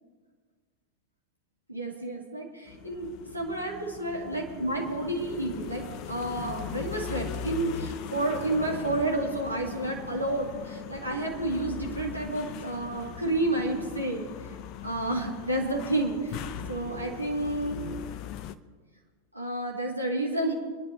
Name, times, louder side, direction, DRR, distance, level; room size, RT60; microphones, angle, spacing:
voice 1, 1.7-14.3 14.8-16.4 16.7-17.8 19.3-20.5, right 2 dB, 85° right, -1 dB, 2.2 m, -30 dB
sound 1, 2.7-18.6, left 9 dB, 40° left, 0.6 m, -40 dB
26.5 x 10.5 x 2.8 m, 1.5 s
figure-of-eight pair, 90°, 0 cm